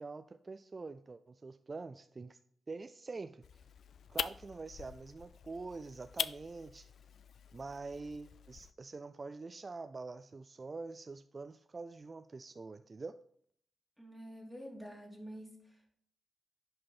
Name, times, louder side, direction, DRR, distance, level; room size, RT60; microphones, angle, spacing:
voice 1, 0.0-2.4 2.7-3.7 4.1-6.9 7.5-13.2, right 3 dB, 35° right, 11 dB, 0.3 m, -45 dB
sound 1, 3.4-8.7, left 7 dB, 75° left, 0.4 m, -43 dB
voice 2, 14.0-15.9, equal, ahead, -2 dB, 3.0 m, -48 dB
10.5 x 5.5 x 4.3 m, 0.65 s
cardioid pair, 85°, 0 cm